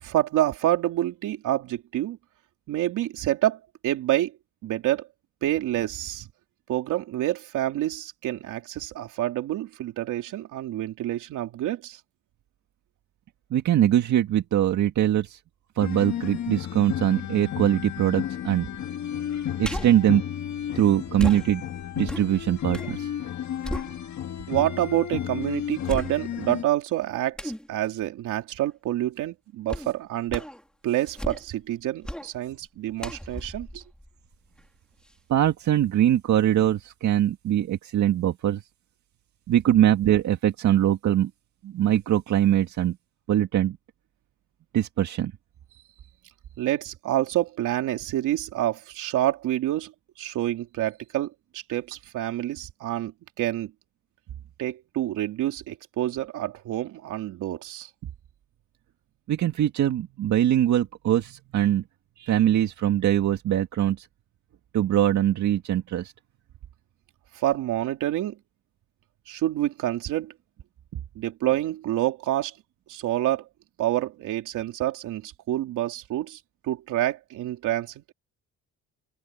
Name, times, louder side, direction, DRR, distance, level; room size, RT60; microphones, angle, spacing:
voice 1, 0.0-2.2 2.7-4.3 4.6-5.1 5.4-6.3 6.7-12.0 24.5-30.4 30.8-33.8 46.6-49.9 50.2-53.7 54.6-57.9 67.3-68.4 69.3-70.3 71.1-72.5 72.9-73.5 73.8-78.1, right 14 dB, 85° right, 3.2 m, -27 dB
voice 2, 13.5-15.4 15.8-18.7 19.6-20.2 20.8-21.6 22.0-23.1 35.3-38.6 39.5-41.3 41.6-43.0 43.3-43.8 44.7-45.3 59.3-61.8 62.2-64.1 64.7-66.1, right 11 dB, 70° right, 2.0 m, -22 dB
sound 1, 15.8-26.6, left 10 dB, 65° left, 2.3 m, -33 dB
sound 2, 19.6-20.1 21.2-23.0 23.3-24.4 24.9-25.0 25.9-26.5 27.4-27.7 29.7-29.9 30.3-30.6 31.0-31.6 32.0-32.3 33.0-34.7 35.1-35.2, equal, 5° left, 3.9 m, -35 dB
open air
cardioid pair, 90°, 30 cm